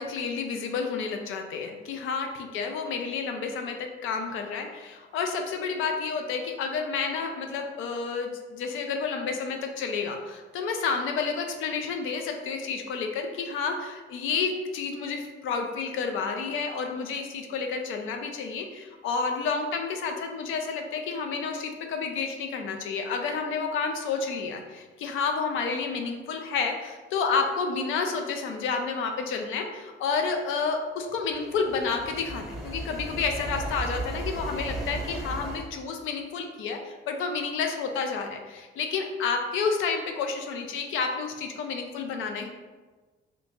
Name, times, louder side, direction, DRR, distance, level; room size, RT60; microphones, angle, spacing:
voice 1, 0.0-42.5, left 5 dB, 85° left, 4 dB, 0.5 m, -30 dB
sound 1, 31.0-35.7, right 2 dB, ahead, 0.7 m, -36 dB
2.8 x 2.6 x 3.5 m, 1.3 s
cardioid pair, 90°, 20 cm